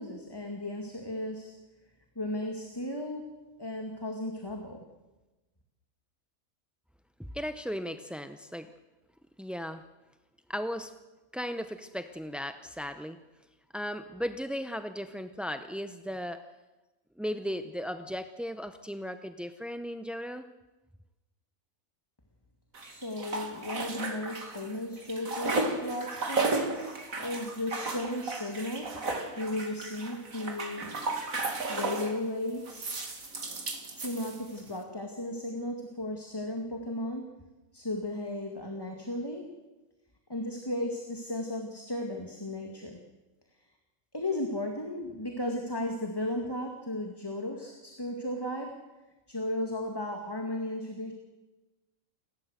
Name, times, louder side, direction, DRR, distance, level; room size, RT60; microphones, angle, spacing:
voice 1, 0.0-1.5 2.2-3.3 3.6-4.8 22.8-28.9 29.4-31.0 31.7-33.0 34.0-37.3 37.7-39.5 40.3-43.0 44.1-48.8 49.3-51.1, left 1 dB, 15° left, 2 dB, 2.1 m, -35 dB
voice 2, 7.2-8.7 9.4-9.8 10.5-10.9 11.3-13.2 13.7-16.4 17.2-20.5, equal, ahead, 9 dB, 0.4 m, -36 dB
sound 1, 22.7-24.7 25.0-32.2 32.6-34.7, right 3 dB, 85° right, 2.7 m, -34 dB
29.5 x 13.0 x 8.0 m, 1.1 s
omnidirectional pair, 1.4 m